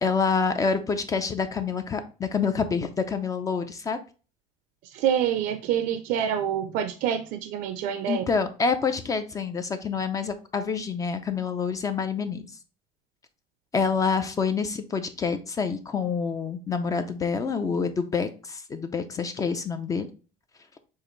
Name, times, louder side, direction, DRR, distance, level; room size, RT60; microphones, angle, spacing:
voice 1, 0.0-4.0 8.1-12.5 13.7-20.1, left 5 dB, 20° left, 9 dB, 0.4 m, -27 dB
voice 2, 4.9-8.2, right 9 dB, 60° right, 8 dB, 0.5 m, -26 dB
6.5 x 2.5 x 3.1 m, 0.35 s
cardioid pair, 140°, 16 cm